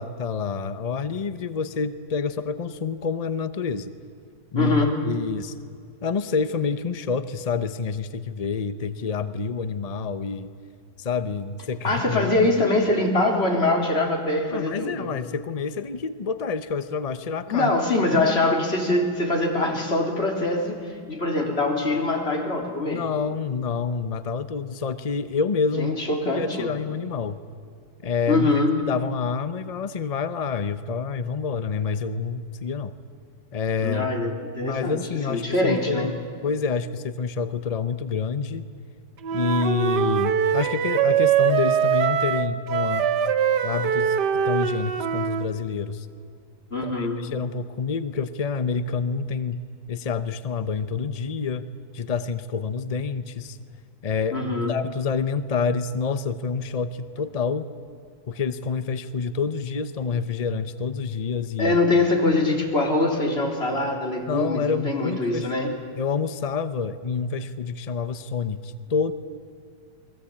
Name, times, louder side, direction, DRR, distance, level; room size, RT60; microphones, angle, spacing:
voice 1, 0.0-3.9 4.5-5.5 6.0-10.5 11.0-12.5 14.5-17.7 18.0-18.2 22.9-26.0 26.3-27.4 28.0-33.0 33.5-34.1 34.6-36.1 36.4-38.6 39.3-43.1 43.6-44.2 44.4-46.1 46.8-49.6 49.9-51.7 51.9-53.6 54.0-54.4 54.7-57.7 58.3-61.8 64.3-65.7 66.0-69.1, left 5 dB, 55° left, 12 dB, 0.4 m, -28 dB
voice 2, 4.5-4.9 11.8-15.1 17.5-23.0 25.8-26.7 28.3-28.7 33.8-35.0 35.3-36.1 46.7-47.2 54.3-54.8 61.6-65.8, left 2 dB, 35° left, 1 dB, 4.0 m, -23 dB
Wind instrument woodwind instrument, 39.2-45.5, right 8 dB, 70° right, 1.6 m, -22 dB
29.0 x 21.5 x 8.6 m, 2.2 s
omnidirectional pair, 1.9 m